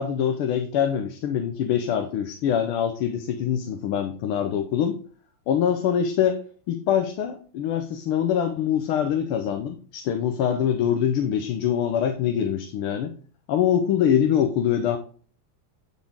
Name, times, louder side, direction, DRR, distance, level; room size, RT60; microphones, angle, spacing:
voice 1, 0.0-5.0 5.5-6.4 6.7-13.1 13.5-15.0, left 9 dB, 90° left, 6 dB, 1.7 m, -24 dB
10.0 x 4.0 x 3.6 m, 0.42 s
omnidirectional pair, 2.3 m